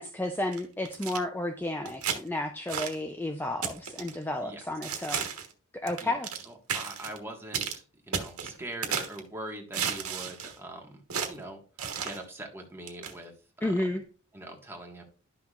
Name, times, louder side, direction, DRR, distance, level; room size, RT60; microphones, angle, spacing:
voice 1, 0.0-5.3 5.7-6.3 13.6-14.0, left 1 dB, 10° left, 5 dB, 0.5 m, -32 dB
sound 1, 0.5-1.2 1.9-2.2 2.7-3.0 3.6-4.1 4.8-5.5 5.9-6.4 6.7-7.2 7.5-7.8 8.1-9.2 9.7-10.6 11.1-11.3 11.8-12.2 12.9-13.1, right 7 dB, 85° right, 1.3 m, -33 dB
voice 2, 6.4-11.6 12.0-13.3 13.6-14.0 14.3-15.0, right 1 dB, 10° right, 1 dB, 1.6 m, -42 dB
11.5 x 5.9 x 2.4 m, 0.37 s
head